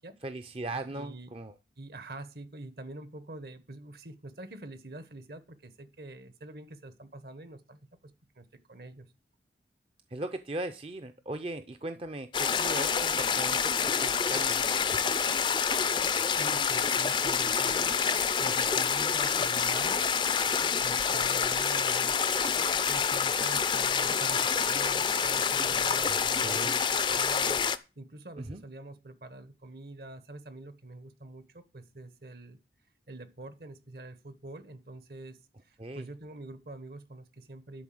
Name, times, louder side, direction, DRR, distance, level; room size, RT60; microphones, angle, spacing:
voice 1, 0.2-1.5 10.1-14.8 26.1-26.8 28.4-28.6 35.8-36.1, right 2 dB, 30° right, 9 dB, 0.6 m, -38 dB
voice 2, 0.8-1.3 1.8-9.1 16.3-20.0 20.8-22.2 22.9-27.6 28.0-32.6 33.1-37.8, right 2 dB, 60° right, 12 dB, 1.2 m, -45 dB
sound 1, 12.3-27.8, left 6 dB, 25° left, 0.5 m, -27 dB
11.0 x 4.2 x 7.7 m, 0.30 s
head